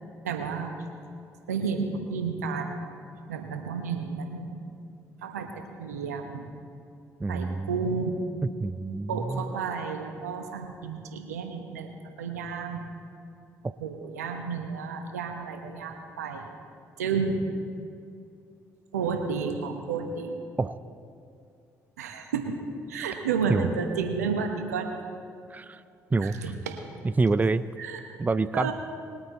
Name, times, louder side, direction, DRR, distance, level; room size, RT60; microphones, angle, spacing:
voice 1, 0.2-0.8 1.5-2.8 3.3-4.7 5.2-6.5 7.3-8.2 9.1-11.9 12.2-12.8 13.8-16.5 17.0-17.5 18.9-20.4 22.0-22.5 22.9-24.9 26.2-26.8 27.8-28.0 28.5-28.7, right 5 dB, 90° right, 5 dB, 1.1 m, -31 dB
voice 2, 7.2-7.7 8.6-9.5 13.6-13.7 20.6-20.8 23.5-23.7 25.5-25.8 26.1-26.4 27.0-27.6 28.2-28.7, right 3 dB, 20° right, 14 dB, 0.5 m, -26 dB
21.0 x 8.5 x 4.2 m, 2.5 s
hypercardioid pair, 50°, 8 cm